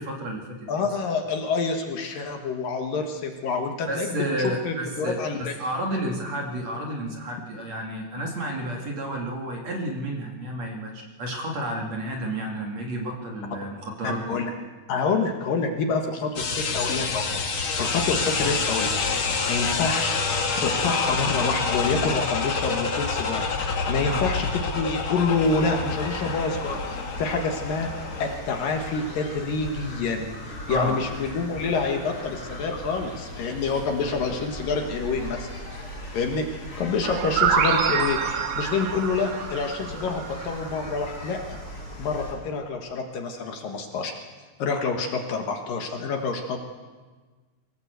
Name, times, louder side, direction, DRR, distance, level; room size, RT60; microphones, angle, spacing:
voice 1, 0.0-0.9 3.9-14.4 24.1-24.2 30.7-31.0, right 1 dB, 45° right, 1 dB, 3.0 m, -31 dB
voice 2, 0.7-5.5 14.0-14.5 14.9-17.3 17.8-19.2 19.5-20.1 20.6-27.9 28.2-35.5 36.1-41.4 42.0-44.1 44.6-46.6, left 4 dB, 60° left, 4 dB, 2.8 m, -27 dB
sound 1, 16.4-28.4, left 4 dB, 45° left, 1.8 m, -27 dB
sound 2, 25.2-42.3, left 1 dB, 20° left, 6.2 m, -38 dB
sound 3, 37.0-40.8, right 7 dB, 90° right, 3.8 m, -26 dB
23.5 x 17.5 x 8.1 m, 1.4 s
omnidirectional pair, 4.9 m